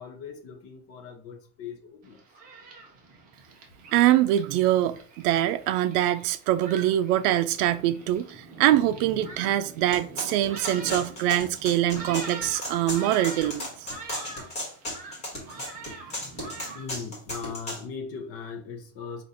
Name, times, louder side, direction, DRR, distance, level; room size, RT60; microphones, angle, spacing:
voice 1, 0.0-2.2 10.9-11.0 16.7-19.2, left 5 dB, 30° left, 0.7 m, -39 dB
Thunderstorm, 2.0-16.9, right 3 dB, 20° right, 0.4 m, -43 dB
voice 2, 3.9-13.9, right 13 dB, 80° right, 0.6 m, -24 dB
sound 1, 9.9-17.8, left 1 dB, 15° left, 1.5 m, -35 dB
4.1 x 2.6 x 4.8 m
cardioid pair, 180°, 46 cm